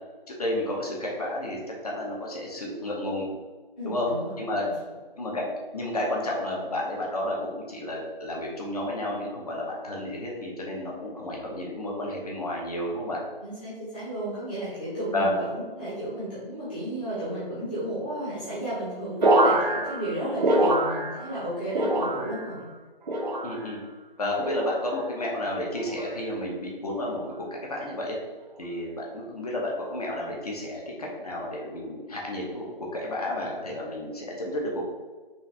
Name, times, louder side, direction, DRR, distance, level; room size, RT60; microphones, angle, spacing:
voice 1, 0.3-3.3 3.8-4.1 4.4-4.6 5.2-5.4 5.7-13.2 15.1-15.3 23.4-23.8 24.2-27.2 27.7-28.2 28.6-32.7 32.9-34.8, left 1 dB, 40° left, -2 dB, 1.0 m, -31 dB
voice 2, 3.8-4.4 13.4-22.7, right 1 dB, 10° left, -12 dB, 0.8 m, -33 dB
sound 1, 19.2-21.4 21.7-22.6 23.1-23.8 24.4-24.8 25.7-26.1 27.0-27.3, right 1 dB, 50° right, 0.7 m, -25 dB
5.6 x 2.6 x 3.3 m, 1.3 s
figure-of-eight pair, 160°, 30 cm